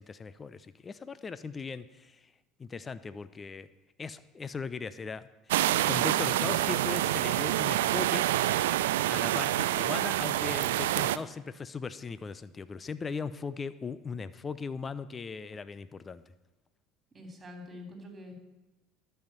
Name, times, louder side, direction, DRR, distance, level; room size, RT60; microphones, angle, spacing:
voice 1, 0.0-2.3 2.6-3.7 4.0-8.3 9.1-16.2, left 5 dB, 25° left, 15 dB, 0.6 m, -39 dB
sound 1, 5.5-11.2, right 14 dB, 85° right, 0.3 m, -27 dB
voice 2, 17.1-18.4, left 1 dB, 20° right, 3 dB, 3.1 m, -45 dB
12.0 x 5.7 x 7.9 m, 1.1 s
supercardioid pair, 85°, 0 cm